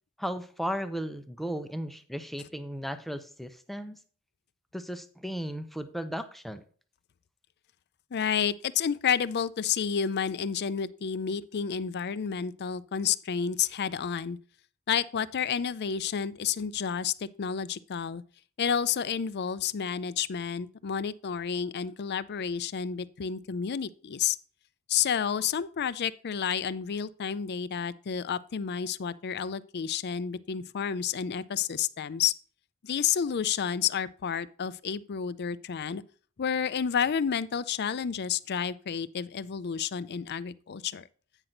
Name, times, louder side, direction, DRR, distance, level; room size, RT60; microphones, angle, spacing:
voice 1, 0.2-4.0 4.7-6.6, equal, ahead, 0.6 m, -35 dB
voice 2, 8.1-14.4 14.9-18.2 18.6-24.4 24.9-32.3 32.8-36.0 36.4-41.1, left 7 dB, 50° left, 0.4 m, -30 dB
8.9 x 6.0 x 3.9 m
head